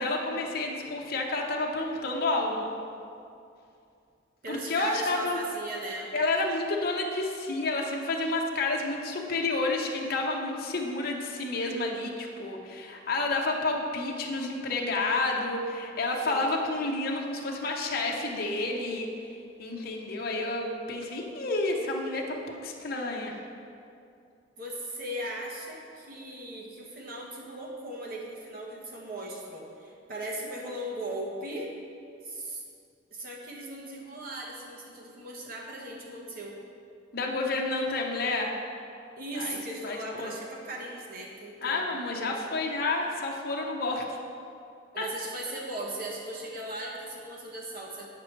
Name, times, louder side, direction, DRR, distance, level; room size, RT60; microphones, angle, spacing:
voice 1, 0.0-2.7 4.5-5.4 6.1-19.1 19.6-23.4 37.1-38.6 39.4-39.6 39.8-40.3 41.6-44.2 45.0-45.1, left 2 dB, 55° left, 0 dB, 0.8 m, -30 dB
voice 2, 4.4-6.1 16.0-16.6 24.6-31.7 32.2-32.6 33.1-36.6 39.2-41.8 42.1-42.4 44.9-48.0, right 1 dB, 50° right, -2 dB, 1.2 m, -38 dB
8.6 x 6.0 x 4.5 m, 2.5 s
head